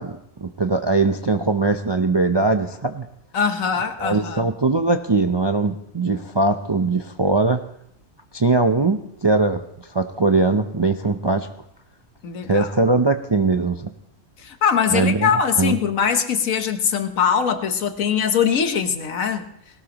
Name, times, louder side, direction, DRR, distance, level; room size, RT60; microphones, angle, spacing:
voice 1, 0.0-3.1 4.0-7.6 8.3-11.5 12.5-13.9 14.9-15.3 15.6-15.8, right 3 dB, 35° right, 6 dB, 0.4 m, -21 dB
voice 2, 3.3-4.5 12.2-12.7 14.4-19.5, left 7 dB, 80° left, 8 dB, 1.5 m, -22 dB
19.5 x 18.0 x 3.0 m, 0.73 s
omnidirectional pair, 1.4 m